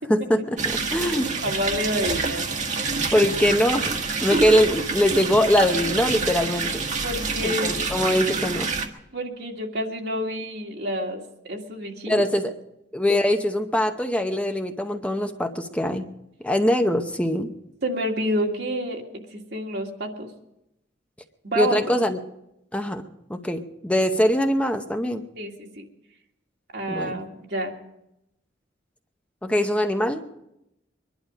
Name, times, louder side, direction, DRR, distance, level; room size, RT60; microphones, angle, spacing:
voice 1, 0.1-1.3 3.1-3.9 4.2-6.9 7.4-8.7 12.1-12.5 12.9-16.1 16.4-17.5 21.6-22.2 22.7-23.0 23.3-25.2 26.9-27.2 29.4-30.2, equal, 5° left, 5 dB, 0.8 m, -22 dB
sound 1, 0.6-8.9, right 4 dB, 45° right, 1.4 m, -27 dB
voice 2, 1.4-2.5 7.0-7.8 9.1-12.3 17.8-19.0 19.3-20.3 21.4-22.0 25.4-25.8 26.7-27.7, equal, 65° right, 1 dB, 2.1 m, -28 dB
23.0 x 11.5 x 5.1 m, 0.86 s
head